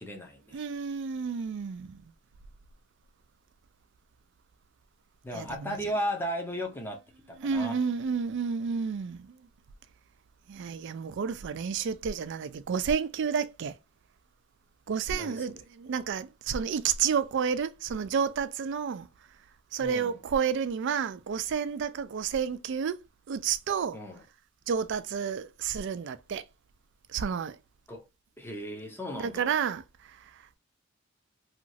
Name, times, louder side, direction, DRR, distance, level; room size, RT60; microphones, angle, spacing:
voice 1, 0.0-0.6 5.2-7.0 7.3-7.8 15.1-15.6 19.8-20.2 23.9-24.2 27.9-28.0 28.4-29.5, equal, 10° left, 0.7 m, -36 dB
voice 2, 0.5-2.0 5.3-5.8 7.4-9.3 10.5-13.7 14.9-19.1 19.7-23.0 23.3-24.0 24.7-26.4 27.1-27.6 29.2-29.8, right 6 dB, 60° right, 0.4 m, -30 dB
2.9 x 2.4 x 2.6 m
head